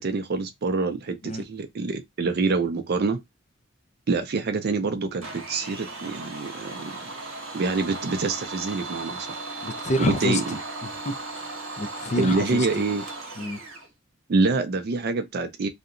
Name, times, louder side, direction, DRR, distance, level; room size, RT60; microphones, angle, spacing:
voice 1, 0.0-3.2 4.1-7.1 7.5-9.4 10.0-10.6 12.2-13.0 14.3-15.7, right 3 dB, 50° right, 0.4 m, -26 dB
Domestic sounds home sounds, 5.2-13.9, right 2 dB, 75° right, 1.0 m, -36 dB
voice 2, 9.6-12.8 13.4-13.6, left 1 dB, 35° left, 0.4 m, -29 dB
2.7 x 2.1 x 2.4 m
head